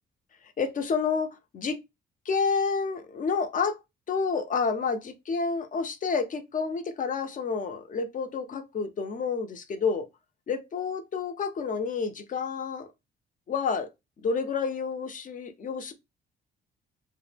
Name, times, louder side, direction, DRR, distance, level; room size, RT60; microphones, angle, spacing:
voice 1, 0.6-1.8 2.3-3.8 4.1-10.1 10.5-12.9 13.5-13.9 14.2-15.9, left 5 dB, 40° left, 0.5 m, -29 dB
2.1 x 2.0 x 3.2 m
cardioid pair, 90°, 20 cm